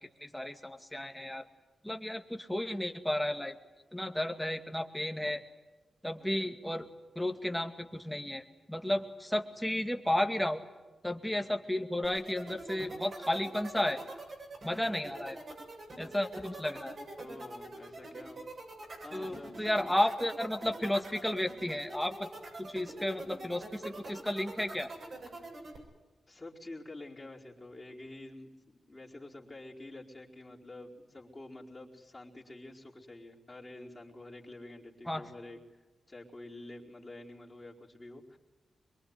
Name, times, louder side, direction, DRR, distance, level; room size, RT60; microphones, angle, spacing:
voice 1, 0.2-1.4 1.8-3.5 3.9-5.4 6.0-6.9 7.2-10.6 11.0-14.0 14.6-15.4 16.0-17.0 19.1-22.3 22.6-24.9 35.1-35.3, left 1 dB, 5° left, 5 dB, 2.3 m, -33 dB
voice 2, 6.2-6.5 17.2-18.4 19.0-19.7 25.3-25.5 26.3-38.4, left 2 dB, 25° left, -3 dB, 4.6 m, -48 dB
sound 1, 12.0-25.8, right 2 dB, 55° right, 8.0 m, -44 dB
23.5 x 23.0 x 9.7 m, 1.2 s
cardioid pair, 70°, 0 cm